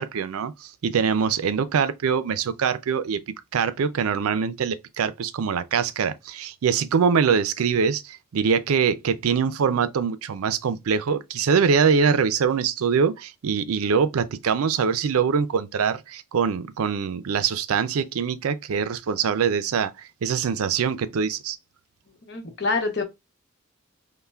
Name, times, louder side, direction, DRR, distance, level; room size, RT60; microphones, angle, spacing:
voice 1, 0.0-3.2 3.5-19.9 20.2-21.6, right 6 dB, 90° right, 0.4 m, -23 dB
voice 2, 22.3-23.0, left 3 dB, 50° left, 0.9 m, -26 dB
5.5 x 2.2 x 2.3 m
head